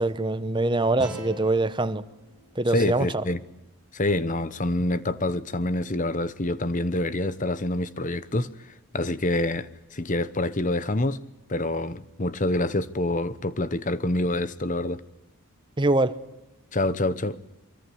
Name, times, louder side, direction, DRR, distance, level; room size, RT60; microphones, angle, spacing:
voice 1, 0.0-2.0 2.6-3.2 15.8-16.2, right 2 dB, 20° right, 0.9 m, -24 dB
sound 1, 1.0-4.1, equal, 5° right, 6.6 m, -43 dB
voice 2, 2.7-3.4 3.9-8.5 8.9-11.2 11.5-15.0 16.7-17.4, left 2 dB, 35° left, 1.0 m, -26 dB
24.0 x 24.0 x 8.7 m
head